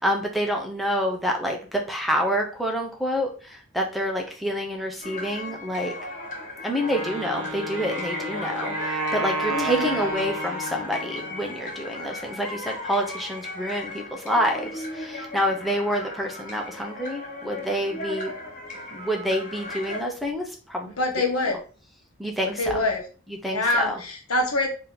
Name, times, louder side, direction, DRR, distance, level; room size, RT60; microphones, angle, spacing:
voice 1, 0.0-5.9 6.6-18.3 18.9-20.9 22.2-22.8 23.4-24.0, equal, ahead, 0 dB, 0.6 m, -27 dB
sound 1, 5.0-20.0, left 2 dB, 35° left, 1.0 m, -35 dB
Wind instrument woodwind instrument, 6.7-11.6, right 2 dB, 80° right, 0.7 m, -32 dB
voice 2, 9.5-10.3 21.0-21.6 22.6-23.0 23.5-24.7, left 2 dB, 90° left, 2 dB, 1.1 m, -25 dB
3.6 x 2.8 x 3.7 m, 0.39 s
head